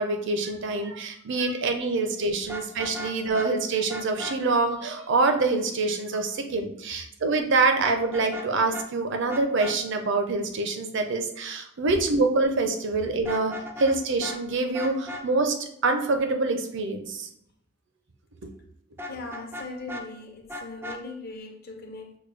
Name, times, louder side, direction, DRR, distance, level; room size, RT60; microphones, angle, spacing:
voice 1, 0.0-13.5 13.8-15.5 15.8-17.3, right 3 dB, 60° right, 0.6 m, -25 dB
Vehicle horn car horn honking, 2.4-3.5 3.9-4.4 7.8-8.5 8.7-8.9 9.3-9.7 13.1-13.9 14.2-14.4 14.7-15.2 19.0-20.0 20.5-21.0, left 1 dB, 10° right, 0.4 m, -36 dB
voice 2, 19.1-22.2, left 2 dB, 50° left, 0.8 m, -39 dB
6.4 x 2.2 x 3.3 m
head